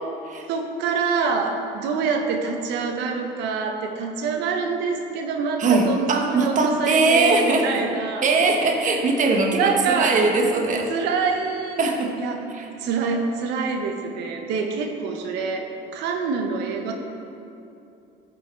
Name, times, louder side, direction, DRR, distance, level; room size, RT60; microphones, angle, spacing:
voice 1, 0.5-8.2 9.5-10.2 10.9-11.8 12.2-16.9, right 5 dB, 85° right, 3 dB, 1.0 m, -26 dB
voice 2, 5.6-7.8 8.2-10.9 11.8-12.1 12.5-12.7, right 3 dB, 50° right, 2 dB, 1.3 m, -21 dB
13.0 x 5.5 x 4.4 m, 2.7 s
cardioid pair, 110°, 17 cm